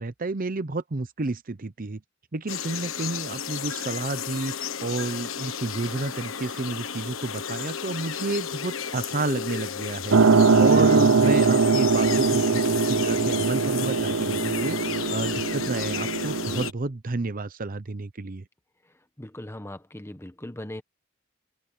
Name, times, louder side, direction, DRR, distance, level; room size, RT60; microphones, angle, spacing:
voice 1, 0.0-2.0 2.3-10.2 10.6-14.8 15.1-18.4, right 2 dB, 45° right, 0.8 m, -30 dB
sound 1, 2.5-16.7, left 7 dB, 90° left, 1.4 m, -33 dB
sound 2, 10.1-16.7, right 4 dB, 75° right, 0.9 m, -21 dB
voice 2, 19.2-20.8, left 1 dB, 15° left, 1.2 m, -39 dB
open air
head